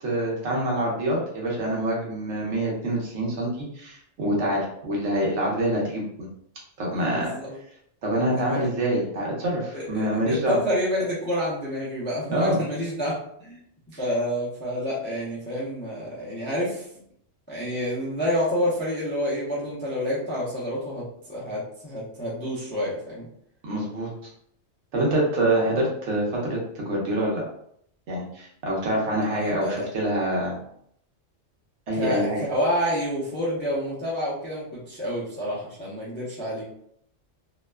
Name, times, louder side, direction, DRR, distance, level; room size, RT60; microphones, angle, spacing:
voice 1, 0.0-6.0 6.8-7.3 8.0-10.6 12.3-12.6 23.6-24.3 24.9-27.4 28.1-30.5 31.9-32.4, right 1 dB, 65° right, -3 dB, 1.1 m, -26 dB
voice 2, 7.0-7.6 8.5-8.6 9.7-13.6 14.0-16.8 17.5-23.3 29.3-29.9 31.9-36.6, equal, 10° left, -7 dB, 0.5 m, -28 dB
2.8 x 2.2 x 2.2 m, 0.69 s
omnidirectional pair, 1.3 m